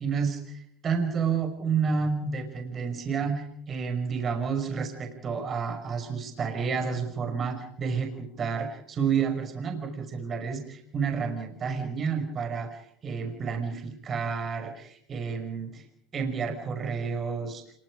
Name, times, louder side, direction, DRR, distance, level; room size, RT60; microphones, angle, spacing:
voice 1, 0.0-15.8 16.1-17.6, right 6 dB, 40° right, 5 dB, 5.6 m, -30 dB
27.0 x 22.5 x 5.1 m, 0.69 s
hypercardioid pair, 80°, 0 cm